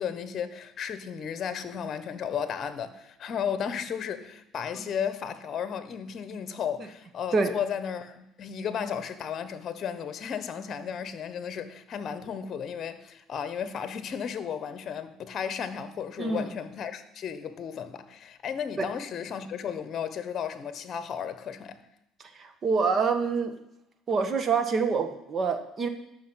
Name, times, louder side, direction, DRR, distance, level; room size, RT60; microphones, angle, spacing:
voice 1, 0.0-21.8, left 7 dB, 45° left, 1.3 m, -34 dB
voice 2, 22.4-23.5 24.1-25.9, right 5 dB, 35° right, 1.7 m, -26 dB
13.0 x 6.3 x 9.0 m
cardioid pair, 110°, 0 cm